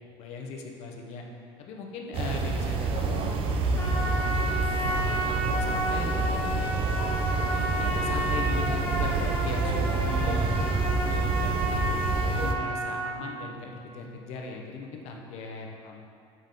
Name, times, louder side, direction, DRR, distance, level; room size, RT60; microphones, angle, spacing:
voice 1, 0.1-1.2 1.6-4.3 5.0-6.7 7.5-11.8 12.3-16.0, left 4 dB, 65° left, 1 dB, 0.8 m, -39 dB
sound 1, 2.1-12.5, right 3 dB, 50° right, 0.5 m, -27 dB
Trumpet, 3.8-13.2, equal, 20° left, 1.2 m, -32 dB
5.4 x 5.4 x 3.8 m, 2.3 s
cardioid pair, 130°, 12 cm